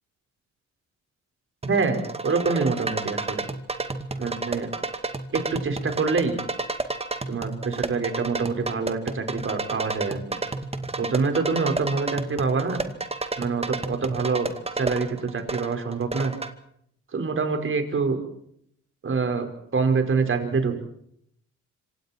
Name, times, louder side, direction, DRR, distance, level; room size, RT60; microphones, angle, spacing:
sound 1, 1.6-16.5, right 3 dB, 20° right, 2.2 m, -31 dB
voice 1, 1.6-3.4 4.2-4.7 5.3-6.4 7.3-10.2 11.0-12.8 13.4-14.5 14.7-16.3 17.1-18.2 19.0-20.7, right 4 dB, 45° right, 6 dB, 5.3 m, -26 dB
26.5 x 25.5 x 4.6 m, 0.69 s
cardioid pair, 90°, 30 cm